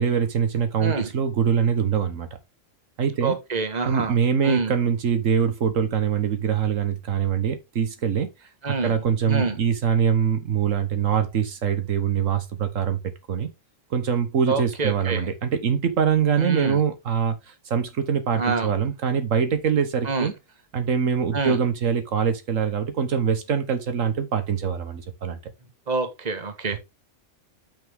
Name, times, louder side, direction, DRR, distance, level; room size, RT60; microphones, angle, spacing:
voice 1, 0.0-2.3 3.0-3.3 3.8-8.3 8.7-13.0 13.3-13.5 13.9-20.3 20.7-25.4, right 7 dB, 80° right, 1.5 m, -23 dB
voice 2, 3.2-4.2 4.4-4.7 8.6-9.0 9.3-9.5 14.5-15.3 16.4-16.8 18.3-18.7 20.0-20.3 21.3-21.6 25.9-26.8, right 4 dB, 35° right, 1.5 m, -26 dB
8.9 x 6.0 x 3.5 m
omnidirectional pair, 1.3 m